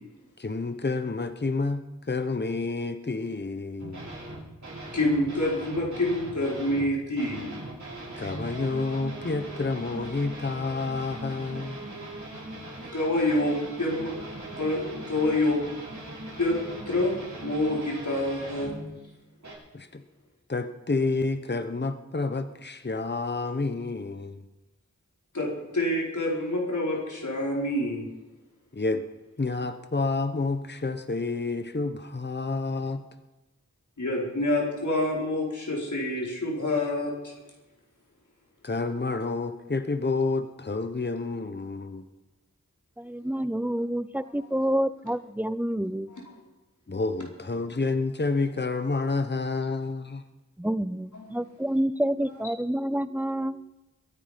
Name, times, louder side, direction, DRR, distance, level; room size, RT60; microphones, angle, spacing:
voice 1, 0.4-4.1 8.2-11.8 19.7-20.0 20.5-24.4 28.7-29.0 29.4-33.0 38.6-42.0 46.9-50.2, left 3 dB, 35° left, 9 dB, 1.0 m, -29 dB
sound 1, 3.8-6.9 7.2-18.9 19.4-19.5, right 1 dB, 75° right, 6.5 m, -40 dB
voice 2, 4.9-7.5 12.9-14.1 14.6-15.6 16.4-16.5 16.9-17.2 17.4-18.7 25.3-28.1 34.0-37.3 46.1-46.2 51.1-51.3, left 1 dB, 80° left, -3 dB, 4.7 m, -27 dB
voice 3, 43.0-46.1 50.6-53.7, right 1 dB, 5° right, 15 dB, 0.6 m, -28 dB
22.5 x 9.8 x 5.2 m, 1.1 s
wide cardioid pair, 45°, 29 cm